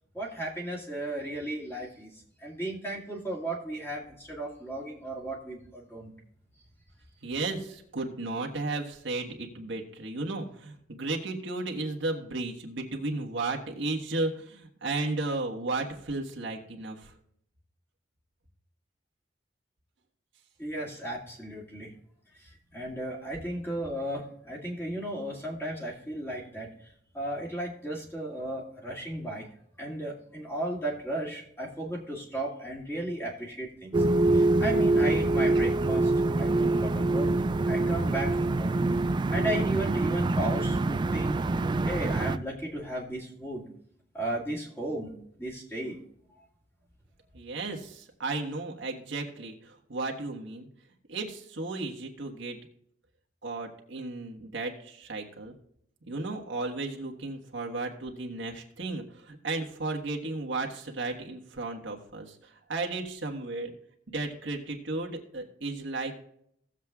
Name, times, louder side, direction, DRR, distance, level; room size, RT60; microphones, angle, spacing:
voice 1, 0.1-6.1 20.6-21.9 22.4-26.7 27.1-29.5 29.8-33.9 34.3-37.3 37.7-38.8 39.3-41.4 41.8-43.7 44.1-45.1 45.4-46.0, right 1 dB, 15° left, -4 dB, 2.2 m, -35 dB
voice 2, 7.2-17.1 47.3-50.7 51.1-52.6 53.4-55.5 56.0-63.7 64.1-66.1, right 2 dB, 75° right, 1 dB, 1.5 m, -34 dB
sound 1, 33.9-42.4, right 2 dB, 25° right, 0.3 m, -25 dB
17.5 x 7.4 x 2.4 m, 0.69 s
head